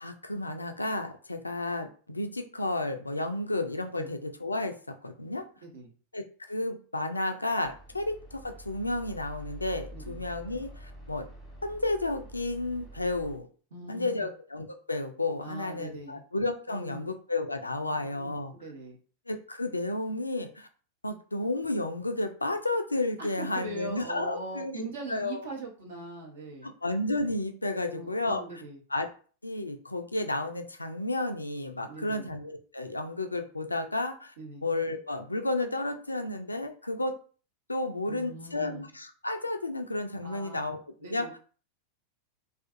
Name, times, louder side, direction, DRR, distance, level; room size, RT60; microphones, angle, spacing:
voice 1, 0.0-4.7 5.0-5.4 6.1-11.3 11.6-13.5 13.9-18.5 19.3-20.7 21.0-25.4 26.6-28.6 28.9-29.1 29.4-34.3 34.6-37.1 37.7-41.3, left 2 dB, 80° left, 6 dB, 0.3 m, -32 dB
sound 1, 7.6-13.4, equal, 15° right, 1.1 m, -47 dB
voice 2, 9.9-10.2 13.7-14.1 15.4-16.2 16.7-17.1 18.6-19.0 23.2-26.7 27.8-28.8 31.8-32.3 34.4-34.6 38.1-38.9 40.2-40.6 41.0-41.4, right 2 dB, 60° right, 1 dB, 0.8 m, -41 dB
2.4 x 2.4 x 2.5 m, 0.40 s
figure-of-eight pair, 90°, 0 cm